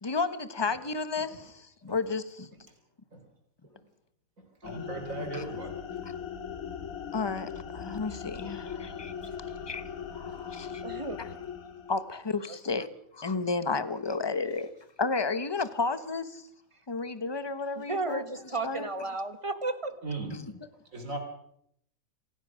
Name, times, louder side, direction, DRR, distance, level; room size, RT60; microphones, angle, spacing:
voice 1, 0.0-2.5 5.2-5.5 7.1-9.1 9.7-9.8 10.1-10.8 11.2-11.3 11.9-12.9 13.1-14.7 15.0-16.4 16.9-18.2 18.6-18.9 20.3-20.5, left 4 dB, 20° left, 13 dB, 1.0 m, -32 dB
sound 1, 4.6-12.1, left 7 dB, 75° left, 2.3 m, -39 dB
voice 2, 4.6-5.8 9.2-9.4 20.0-20.3 20.9-21.2, right 3 dB, 70° right, 3 dB, 4.6 m, -37 dB
voice 3, 10.8-11.2 12.5-12.6 17.8-19.9, right 3 dB, 25° right, 11 dB, 1.4 m, -33 dB
26.5 x 16.0 x 6.3 m, 0.74 s
omnidirectional pair, 1.5 m